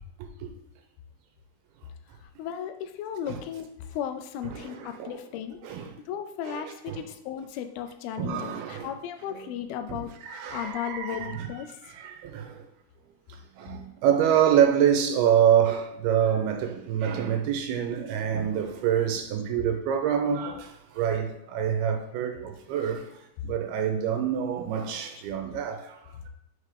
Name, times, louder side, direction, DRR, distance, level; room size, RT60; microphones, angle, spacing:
voice 1, 2.4-5.6 6.1-10.1 10.5-11.8 22.1-22.2, left 9 dB, 85° left, 2.5 m, -35 dB
voice 2, 4.5-5.2 5.6-6.0 6.5-7.0 8.2-8.9 9.9-11.6 11.8-12.7 13.3-26.3, right 9 dB, 90° right, 2.7 m, -26 dB
6.4 x 4.9 x 3.4 m
omnidirectional pair, 4.4 m